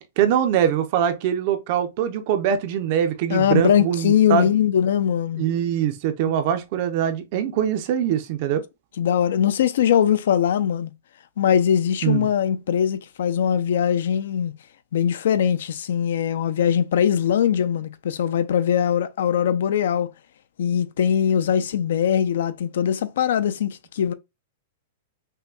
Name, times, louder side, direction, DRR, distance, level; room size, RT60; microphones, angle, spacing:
voice 1, 0.2-4.5 5.4-8.6 12.0-12.3, right 9 dB, 35° right, 0.5 m, -23 dB
voice 2, 3.3-5.4 9.0-10.9 11.4-14.5 14.9-20.1 20.6-24.1, left 9 dB, 65° left, 0.4 m, -21 dB
5.5 x 2.2 x 2.3 m
supercardioid pair, 180°, 0 cm